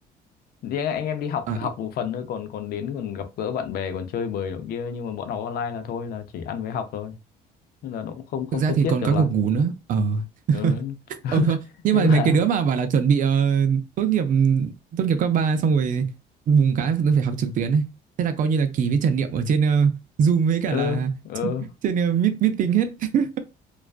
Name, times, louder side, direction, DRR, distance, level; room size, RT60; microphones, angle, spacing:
voice 1, 0.6-7.1 7.8-9.3 10.5-10.9 11.2-11.6 11.9-12.4 20.7-21.7, left 7 dB, 65° left, 0.5 m, -29 dB
voice 2, 8.5-10.8 11.3-11.6 11.8-16.1 16.5-17.9 18.2-21.1 21.4-21.5 21.8-23.4, right 6 dB, 50° right, 0.5 m, -21 dB
2.4 x 2.2 x 2.3 m
cardioid pair, 110°, 17 cm